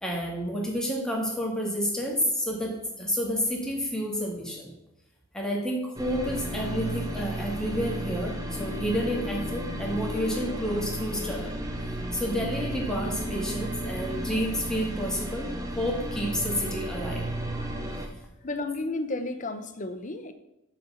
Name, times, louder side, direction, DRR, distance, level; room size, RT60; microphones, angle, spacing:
voice 1, 0.0-4.7 5.3-11.5 12.1-17.3, equal, 5° left, -2 dB, 1.9 m, -30 dB
sound 1, 6.0-18.1, equal, 15° right, 1.1 m, -33 dB
voice 2, 18.4-20.3, left 2 dB, 40° left, 9 dB, 0.8 m, -32 dB
7.4 x 5.9 x 7.0 m, 0.88 s
head